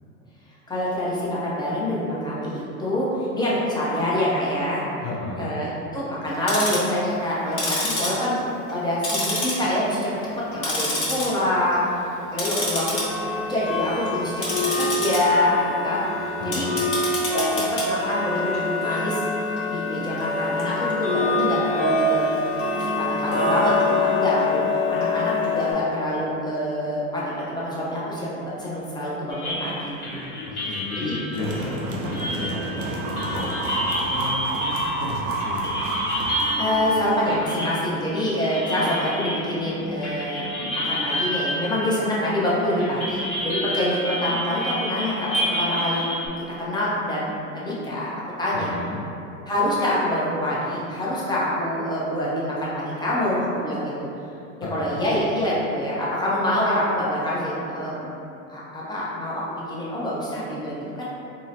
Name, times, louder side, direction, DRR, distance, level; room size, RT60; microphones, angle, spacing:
voice 1, 0.7-4.8 5.4-8.4 8.7-10.1 10.5-16.0 16.4-16.7 17.3-19.2 19.6-22.3 22.7-29.9 30.6-30.7 31.0-31.2 36.6-46.0 46.6-48.1 48.4-48.7 49.5-53.9 54.7-58.1 58.5-61.0, left 1 dB, 10° left, -7 dB, 0.6 m, -26 dB
voice 2, 5.0-5.5 16.4-16.8 30.6-35.8 48.5-49.0 54.6-55.1, left 2 dB, 55° left, -2 dB, 0.6 m, -33 dB
Tick-tock, 6.3-6.9 7.5-8.8 9.0-9.9 10.2-11.3 11.6-11.9 12.3-25.7, left 2 dB, 30° left, 0.9 m, -25 dB
sound 1, 29.3-42.5 42.8-46.3, equal, 80° left, 1.2 m, -30 dB
sound 2, 31.3-37.3, right 2 dB, 75° right, 0.7 m, -29 dB
3.7 x 2.0 x 2.7 m, 2.7 s
hypercardioid pair, 100°, 43 cm